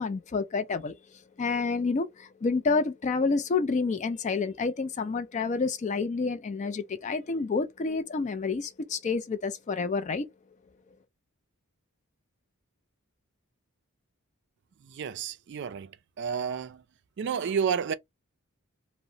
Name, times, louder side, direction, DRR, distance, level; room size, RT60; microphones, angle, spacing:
voice 1, 0.0-10.3, left 4 dB, 35° left, 0.3 m, -29 dB
voice 2, 14.9-15.9 16.2-16.8 17.2-17.9, right 7 dB, 55° right, 0.3 m, -30 dB
2.8 x 2.0 x 2.6 m
head